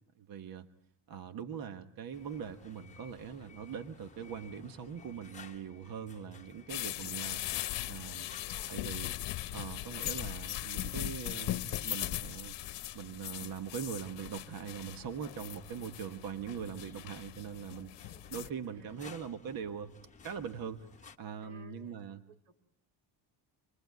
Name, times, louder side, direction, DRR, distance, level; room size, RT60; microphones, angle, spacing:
voice 1, 0.2-0.7 1.1-7.6 7.9-8.3 8.7-9.1 9.5-12.5 12.9-17.9 18.3-19.9 20.2-20.9 21.2-22.2, right 7 dB, 45° right, 8 dB, 1.3 m, -42 dB
sound 1, 2.1-21.2, left 5 dB, 15° left, 1.3 m, -57 dB
sound 2, 6.7-18.5, left 15 dB, 60° left, 1.1 m, -39 dB
voice 2, 8.2-8.8 15.4-15.6 18.0-18.3 18.6-19.4 21.4-22.0 22.3-22.5, right 2 dB, 80° right, 6 dB, 4.6 m, -60 dB
27.0 x 23.0 x 9.4 m, 0.71 s
cardioid pair, 165°, 50 cm